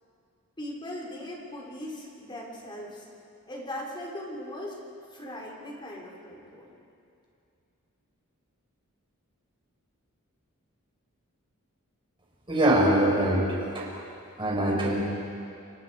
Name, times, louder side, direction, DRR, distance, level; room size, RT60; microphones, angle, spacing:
voice 1, 0.6-3.1 3.5-4.8 5.1-6.7, left 1 dB, 20° left, -2 dB, 3.7 m, -39 dB
voice 2, 12.5-13.5 13.7-13.9 14.4-15.0, right 1 dB, 25° right, -3 dB, 5.0 m, -23 dB
28.5 x 24.5 x 4.8 m, 2.5 s
head